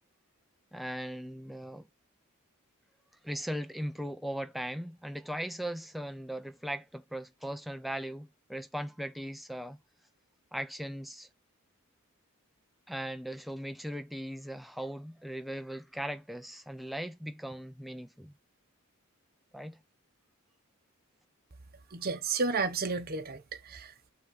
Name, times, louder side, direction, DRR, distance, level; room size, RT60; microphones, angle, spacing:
voice 1, 0.7-1.9 3.2-9.8 10.5-11.3 12.9-18.3 19.5-19.8, equal, ahead, 0.5 m, -38 dB
voice 2, 21.9-24.1, right 4 dB, 40° right, 0.9 m, -32 dB
6.5 x 3.7 x 5.0 m
head